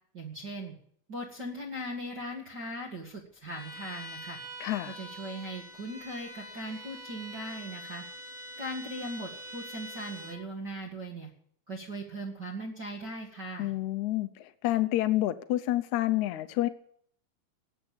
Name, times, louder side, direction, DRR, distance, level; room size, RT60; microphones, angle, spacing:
voice 1, 0.1-0.7 1.1-4.4 4.9-8.0 8.6-11.3 11.7-13.7, right 1 dB, 35° right, -3 dB, 2.0 m, -39 dB
Bowed string instrument, 3.5-10.5, equal, ahead, 1.9 m, -44 dB
voice 2, 4.6-5.0 13.6-16.7, left 15 dB, 80° left, 11 dB, 1.7 m, -28 dB
19.0 x 8.1 x 8.6 m, 0.64 s
omnidirectional pair, 4.2 m